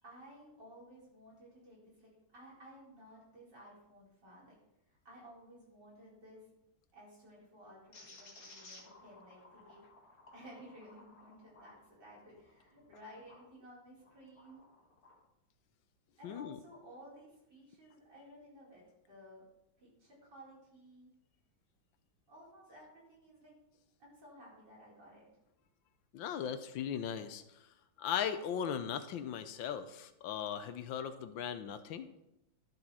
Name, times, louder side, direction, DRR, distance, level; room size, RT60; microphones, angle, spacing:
voice 1, 0.0-4.6 4.9-6.5 6.9-9.8 10.3-14.6 16.2-18.8 19.1-19.4 19.8-21.1 22.3-23.5 24.0-25.3, equal, 60° right, -6 dB, 4.8 m, -56 dB
sound 1, 7.9-13.5 14.0-15.2, left 2 dB, 50° left, 2.2 m, -58 dB
voice 2, 16.2-16.6 26.1-27.4 28.0-32.1, left 8 dB, 85° left, 11 dB, 1.5 m, -38 dB
12.0 x 6.7 x 4.2 m, 0.87 s
omnidirectional pair, 2.1 m